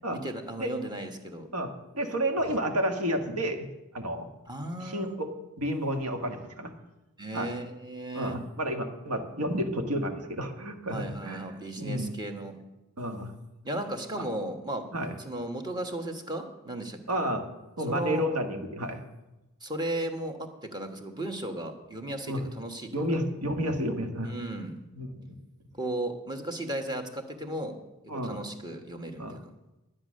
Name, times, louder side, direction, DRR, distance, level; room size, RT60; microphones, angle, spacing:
voice 1, 0.1-1.5 4.5-5.1 7.2-8.4 10.9-12.6 13.6-14.9 15.2-17.0 17.9-18.2 19.6-23.0 24.2-24.8 25.8-27.8 28.0-29.4, right 1 dB, 20° right, 5 dB, 1.3 m, -35 dB
voice 2, 1.5-3.7 3.9-4.3 4.8-5.3 5.6-6.7 7.3-7.5 8.1-12.1 13.0-13.3 14.1-14.2 14.9-15.2 17.1-17.5 17.8-19.0 22.3-22.4 22.9-24.3 24.9-25.3 28.1-28.4 29.2-29.4, equal, 85° right, 5 dB, 1.6 m, -31 dB
11.0 x 10.0 x 6.4 m, 1.0 s
head